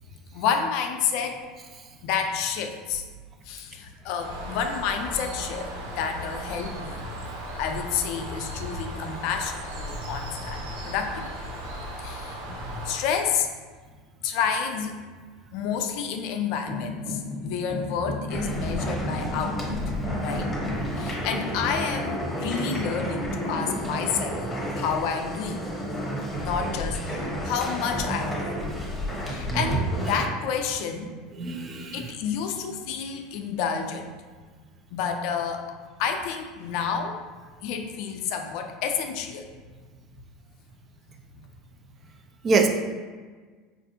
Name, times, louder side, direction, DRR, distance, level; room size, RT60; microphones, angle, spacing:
voice 1, 0.3-1.4 2.0-3.0 3.4-7.0 7.6-11.3 12.0-12.4 12.8-13.5 14.2-14.9 15.5-20.5 21.0-25.6 26.4-28.5 29.2-31.2 31.9-34.1 34.9-35.7 36.0-37.2 37.6-39.5, left 6 dB, 65° left, 5 dB, 0.4 m, -29 dB
Bird, 4.2-13.0, equal, 90° right, 0.7 m, -36 dB
sound 1, 16.7-20.9, left 3 dB, 15° right, 1.3 m, -34 dB
sound 2, 18.3-30.3, equal, 10° left, 0.9 m, -31 dB
voice 2, 31.4-32.0 42.4-42.7, right 4 dB, 35° right, 4 dB, 0.4 m, -24 dB
4.5 x 2.5 x 2.7 m, 1.5 s
supercardioid pair, 100°, 0 cm